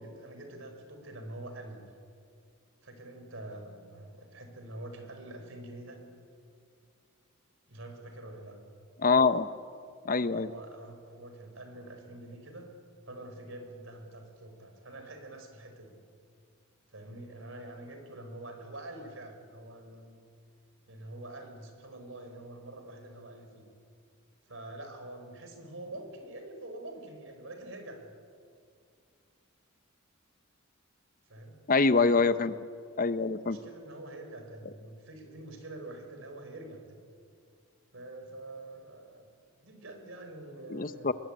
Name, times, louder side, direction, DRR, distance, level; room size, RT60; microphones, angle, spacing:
voice 1, 0.0-1.8 2.8-6.0 7.7-8.6 10.3-12.7 13.1-16.0 16.9-20.2 20.9-23.6 24.5-28.1 31.3-31.5 32.0-32.3 33.4-37.0 37.9-39.3 39.6-41.1, right 1 dB, 65° right, 6 dB, 4.9 m, -45 dB
voice 2, 9.0-9.5 10.0-10.5 31.7-32.5 33.0-33.6 40.7-41.1, left 4 dB, 40° left, 13 dB, 0.8 m, -25 dB
22.5 x 22.0 x 8.9 m, 2.2 s
head